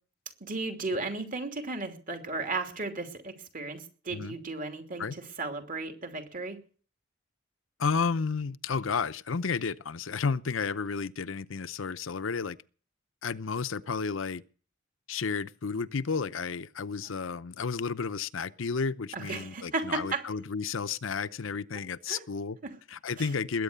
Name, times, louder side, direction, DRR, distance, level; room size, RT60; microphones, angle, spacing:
voice 1, 0.4-5.1 5.4-6.6 19.1-20.3 22.1-22.2 22.6-22.7 23.2-23.3, right 3 dB, 45° right, 2.9 m, -34 dB
voice 2, 7.8-12.6 13.2-14.4 15.1-22.6 22.9-23.6, left 5 dB, 80° left, 0.7 m, -32 dB
20.5 x 9.3 x 6.8 m
head